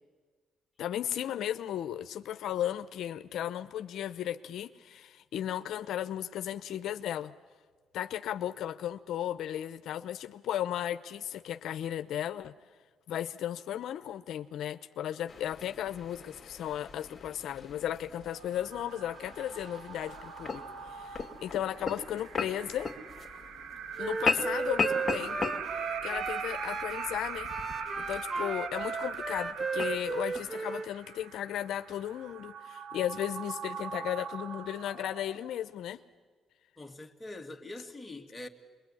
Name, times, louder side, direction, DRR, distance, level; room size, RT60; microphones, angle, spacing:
voice 1, 0.8-7.3 7.9-12.5 13.1-22.9 24.0-25.6 26.0-27.5 28.0-36.0, left 11 dB, 75° left, 0.7 m, -35 dB
sound 1, 15.3-30.5, left 5 dB, 30° left, 2.3 m, -39 dB
sound 2, 18.2-35.6, right 6 dB, 85° right, 1.8 m, -41 dB
Wind instrument woodwind instrument, 24.0-27.2 27.5-30.9, right 4 dB, 30° right, 0.8 m, -35 dB
voice 2, 36.8-38.5, left 2 dB, 15° left, 2.4 m, -44 dB
27.5 x 22.0 x 9.9 m
cardioid pair, 90°, 0 cm